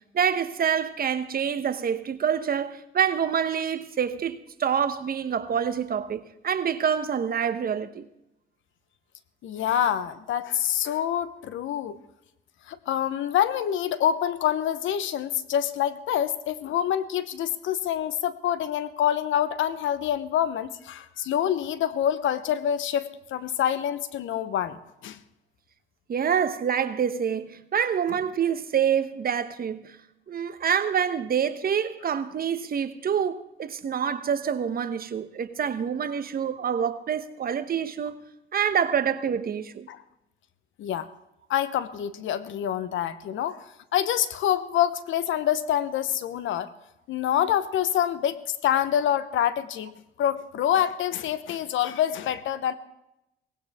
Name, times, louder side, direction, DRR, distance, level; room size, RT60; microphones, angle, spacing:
voice 1, 0.1-8.1 26.1-30.0 30.3-38.2 38.5-39.9, right 8 dB, 50° right, 1.0 m, -26 dB
voice 2, 9.4-12.0 12.7-24.8 25.0-25.2 39.9-40.0 40.8-41.1 41.5-43.6 43.9-46.7 47.1-49.9 50.2-52.7, left 10 dB, 80° left, 1.0 m, -26 dB
18.5 x 16.0 x 3.6 m
cardioid pair, 90°, 20 cm